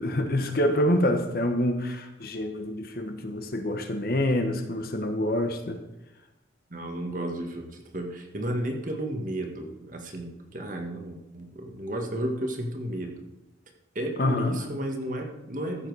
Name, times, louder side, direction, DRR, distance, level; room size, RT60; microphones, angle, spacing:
voice 1, 0.0-5.8 14.2-14.6, left 1 dB, 50° left, 6 dB, 1.2 m, -26 dB
voice 2, 6.7-13.2 13.9-15.9, right 1 dB, 45° right, 3 dB, 1.6 m, -33 dB
14.5 x 7.4 x 4.8 m, 0.96 s
head